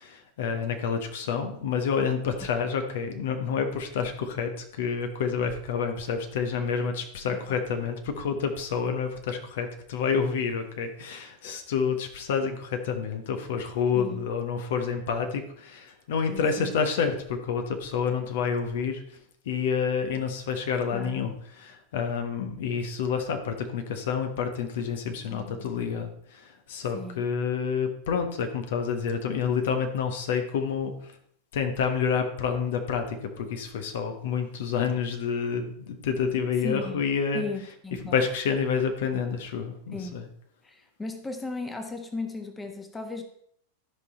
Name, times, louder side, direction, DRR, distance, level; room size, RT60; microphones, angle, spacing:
voice 1, 0.0-19.0 19.4-31.1 31.5-37.4 38.0-40.2, left 6 dB, 55° left, 6 dB, 1.2 m, -28 dB
voice 2, 13.9-14.3 16.3-16.7 20.9-21.2 25.3-25.6 26.9-27.2 36.6-37.0 37.3-38.2 39.9-40.2 40.6-43.2, left 3 dB, 10° left, 5 dB, 1.3 m, -36 dB
13.0 x 5.6 x 4.4 m, 0.67 s
figure-of-eight pair, 90°, 0 cm